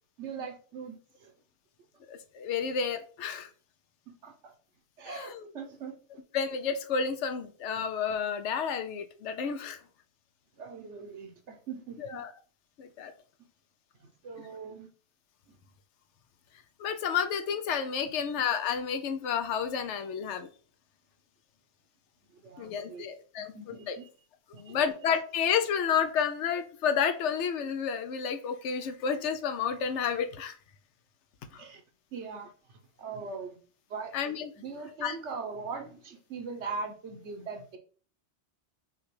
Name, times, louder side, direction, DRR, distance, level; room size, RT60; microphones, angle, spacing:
voice 1, 0.2-1.3 4.1-4.5 5.0-5.9 10.6-12.2 14.0-14.9 22.3-23.0 23.4-24.1 24.5-24.8 31.4-31.8 32.1-33.6 33.9-34.2 34.6-37.8, right 5 dB, 85° right, 4 dB, 1.2 m, -41 dB
voice 2, 2.1-3.5 5.1-5.5 6.3-9.8 12.0-12.3 12.8-13.1 16.8-20.5 22.6-23.5 23.9-24.0 24.5-30.6 31.5-31.6 34.1-34.5 35.0-35.2, left 7 dB, 85° left, 9 dB, 0.9 m, -30 dB
5.9 x 2.3 x 3.2 m, 0.41 s
omnidirectional pair, 1.2 m